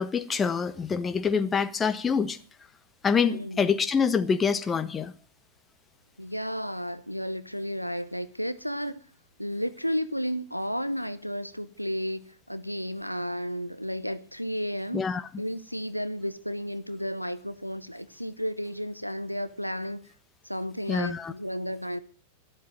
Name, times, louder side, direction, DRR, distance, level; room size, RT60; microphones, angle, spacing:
voice 1, 0.0-2.4 3.0-5.1 14.9-15.2 20.9-21.3, left 6 dB, 20° left, 1.4 m, -26 dB
voice 2, 3.2-3.6 6.2-9.0 9.4-15.0 15.4-20.0 20.4-22.0, equal, 90° left, 0.9 m, -32 dB
13.0 x 12.0 x 9.0 m
figure-of-eight pair, 90°, 0 cm